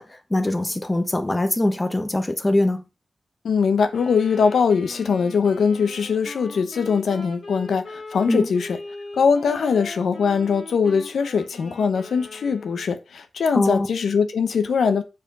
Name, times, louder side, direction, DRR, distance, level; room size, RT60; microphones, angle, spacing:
voice 1, 0.0-2.8 8.3-8.5 13.5-13.9, left 1 dB, 15° left, 1.3 m, -22 dB
voice 2, 3.4-8.8 9.1-15.0, left 6 dB, 90° left, 1.1 m, -21 dB
Wind instrument woodwind instrument, 3.9-13.0, left 2 dB, 55° left, 3.0 m, -40 dB
7.9 x 4.7 x 5.4 m
wide cardioid pair, 135°, 0 cm